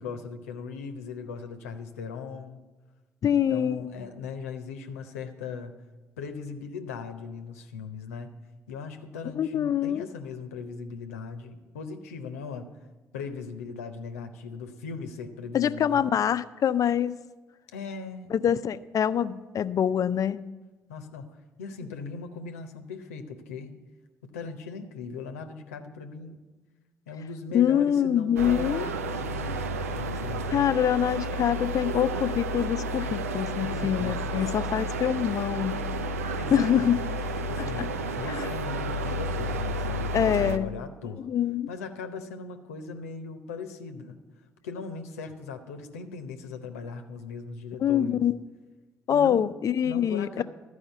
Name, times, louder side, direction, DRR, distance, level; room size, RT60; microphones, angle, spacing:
voice 1, 0.0-2.6 3.2-5.7 6.2-8.3 8.7-12.7 13.1-16.2 17.7-18.3 20.9-23.7 24.2-26.4 27.1-30.6 33.7-34.5 36.4-37.2 37.5-41.3 41.7-44.2 44.6-48.2 49.1-49.5 49.8-50.4, left 5 dB, 85° left, 7 dB, 0.8 m, -39 dB
voice 2, 3.2-3.8 9.3-10.1 15.5-17.1 18.3-20.4 27.5-28.9 30.5-35.8 36.5-37.0 37.8-37.9 38.3-38.5 40.1-40.7 41.2-41.7 47.8-48.4 49.1-50.4, left 9 dB, 50° left, 15 dB, 0.5 m, -25 dB
sound 1, 28.4-40.6, right 1 dB, 90° right, 0.4 m, -31 dB
12.5 x 4.9 x 8.1 m, 1.2 s
hypercardioid pair, 45°, 8 cm